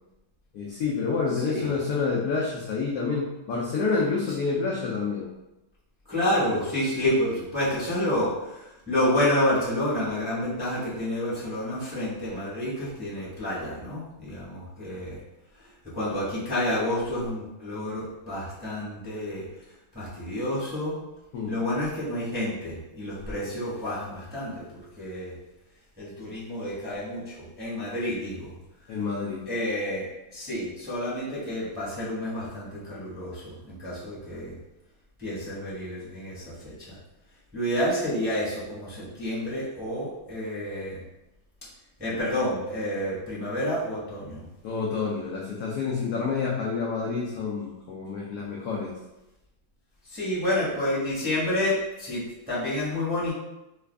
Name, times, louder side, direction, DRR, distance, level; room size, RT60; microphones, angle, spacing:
voice 1, 0.5-5.3 21.3-21.5 28.9-29.5 44.6-48.9, left 4 dB, 75° left, -3 dB, 0.8 m, -28 dB
voice 2, 1.3-1.7 6.1-15.2 15.9-19.4 19.9-20.9 21.5-25.3 26.0-28.5 29.5-34.6 35.2-37.0 37.5-41.0 42.0-44.4 50.0-53.3, left 1 dB, 5° right, -9 dB, 0.8 m, -29 dB
3.3 x 2.4 x 3.3 m, 0.96 s
omnidirectional pair, 2.2 m